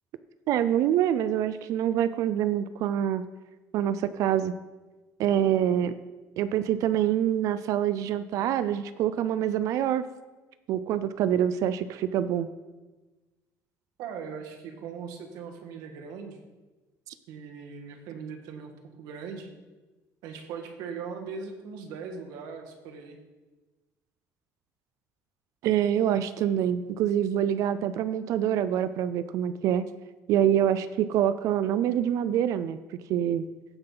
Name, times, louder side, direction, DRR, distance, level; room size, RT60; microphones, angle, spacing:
voice 1, 0.5-3.2 3.7-4.5 5.2-5.9 6.4-10.0 10.7-12.5 25.6-29.8 30.3-32.8 33.1-33.4, right 10 dB, 60° right, 13 dB, 0.4 m, -25 dB
voice 2, 14.0-16.4 17.3-18.7 19.0-19.5 20.2-23.2, right 6 dB, 90° right, 4 dB, 1.5 m, -39 dB
15.5 x 5.7 x 3.9 m, 1.2 s
cardioid pair, 170°, 6 cm